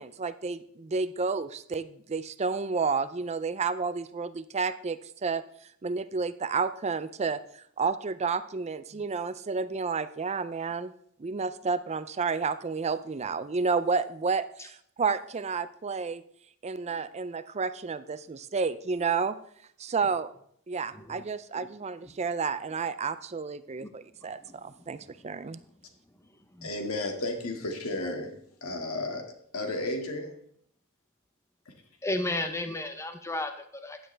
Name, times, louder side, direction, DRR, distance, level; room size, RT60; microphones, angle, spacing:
voice 1, 0.0-5.4 5.8-10.9 11.2-16.2 16.6-19.4 19.8-20.3 20.7-25.0 25.2-25.6, right 5 dB, 30° right, 13 dB, 0.5 m, -31 dB
voice 2, 20.9-21.2 21.5-21.7 23.8-23.9 24.4-24.9 26.5-26.7 32.0-34.0, left 2 dB, 15° left, 7 dB, 0.9 m, -34 dB
voice 3, 26.6-28.3 28.6-30.4, left 2 dB, 75° left, 4 dB, 2.1 m, -33 dB
15.5 x 10.0 x 3.4 m, 0.65 s
head